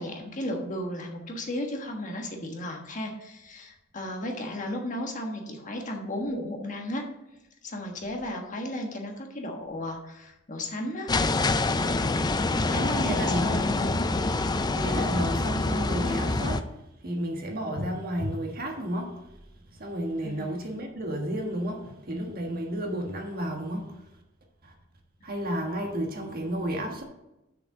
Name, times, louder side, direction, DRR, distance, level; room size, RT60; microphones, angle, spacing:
voice 1, 0.0-7.0 7.6-11.1 12.7-14.0 20.2-20.6, left 1 dB, 40° left, 1.4 m, -34 dB
sound 1, 11.1-16.6, left 2 dB, 20° left, 0.4 m, -26 dB
voice 2, 12.7-13.6 14.7-16.7 17.0-19.1 19.8-23.8 25.2-27.0, equal, 50° right, 1.5 m, -32 dB
6.6 x 5.2 x 7.1 m
head